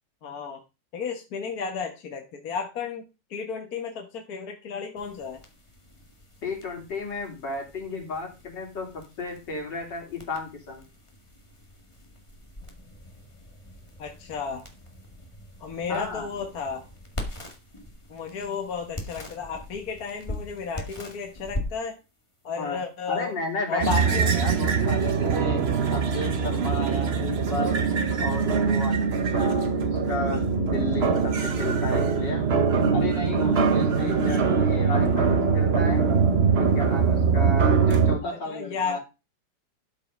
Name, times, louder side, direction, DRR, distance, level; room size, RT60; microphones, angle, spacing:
voice 1, 0.2-0.6 0.9-3.0 3.3-5.4 14.0-14.7 15.6-16.8 18.1-22.0 22.4-23.4 23.7-24.4 29.8-30.0 38.2-39.0, left 5 dB, 60° left, 3 dB, 1.8 m, -33 dB
sound 1, 5.0-24.6, left 1 dB, 15° left, 1.9 m, -42 dB
voice 2, 6.4-10.8 15.9-16.3 22.6-22.8 23.1-25.6 25.9-27.8 28.2-32.5 32.9-36.0 36.6-39.0, left 3 dB, 85° left, 0 dB, 3.9 m, -33 dB
sound 2, 23.8-38.2, right 5 dB, 40° right, 1.1 m, -22 dB
12.5 x 5.5 x 5.3 m, 0.29 s
omnidirectional pair, 1.9 m